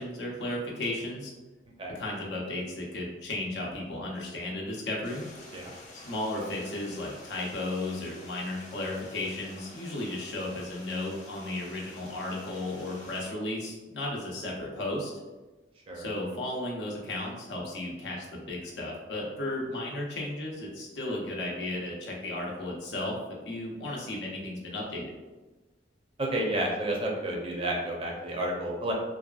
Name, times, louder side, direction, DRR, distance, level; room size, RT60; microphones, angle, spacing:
voice 1, 0.0-1.3 1.9-5.3 5.9-15.1 15.9-23.2 23.4-25.1, left 1 dB, 85° left, -2 dB, 0.7 m, -34 dB
Stream, 5.0-13.3, left 2 dB, 45° left, 0.5 m, -49 dB
voice 2, 26.2-28.9, right 1 dB, 30° right, -1 dB, 0.5 m, -30 dB
2.7 x 2.3 x 2.3 m, 1.2 s
head